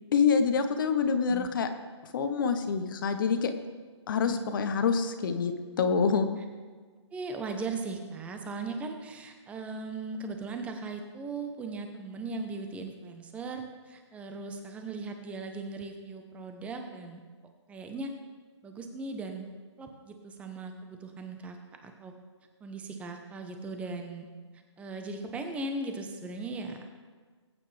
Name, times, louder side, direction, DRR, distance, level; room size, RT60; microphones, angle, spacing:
voice 1, 0.1-1.7 2.1-3.5 4.1-6.3, left 5 dB, 45° left, 8 dB, 1.2 m, -26 dB
voice 2, 4.1-4.4 7.1-17.2 17.7-18.1 18.6-19.5 19.8-22.1 22.6-24.3 24.8-26.9, right 3 dB, 10° right, 5 dB, 1.0 m, -38 dB
20.5 x 9.3 x 3.4 m, 1.5 s
hypercardioid pair, 150°, 16 cm